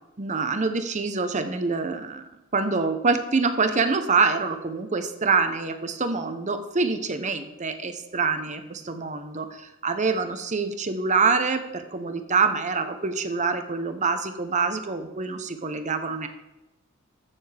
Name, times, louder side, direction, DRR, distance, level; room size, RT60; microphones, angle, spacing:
voice 1, 0.2-2.2 2.5-16.3, right 4 dB, 35° right, 8 dB, 0.8 m, -25 dB
14.0 x 7.0 x 3.4 m, 0.99 s
head